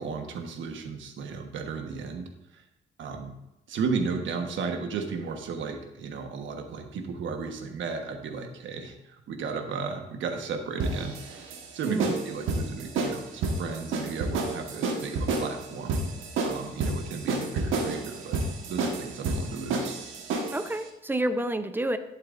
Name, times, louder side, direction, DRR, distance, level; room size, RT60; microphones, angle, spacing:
voice 1, 0.0-2.3 2.5-2.6 3.0-3.3 3.7-16.0 16.4-18.4 18.7-20.0, right 5 dB, 70° right, 4 dB, 1.3 m, -34 dB
sound 1, 10.8-20.7, right 3 dB, 85° right, 1.4 m, -30 dB
voice 2, 11.8-12.2 20.5-22.0, right 1 dB, 10° right, 10 dB, 0.7 m, -29 dB
11.5 x 7.4 x 2.6 m, 0.92 s
cardioid pair, 90°, 20 cm